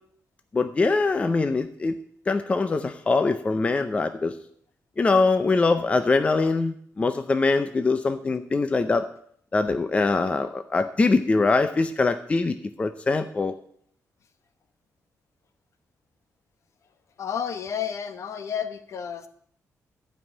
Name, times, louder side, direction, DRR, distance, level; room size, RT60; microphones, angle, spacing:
voice 1, 0.5-2.0 2.3-4.3 5.0-9.1 9.5-13.5, left 3 dB, 20° left, 9 dB, 0.5 m, -23 dB
voice 2, 17.2-19.3, left 8 dB, 55° left, 10 dB, 0.9 m, -31 dB
12.5 x 5.5 x 8.7 m, 0.64 s
wide cardioid pair, 180°, 6 cm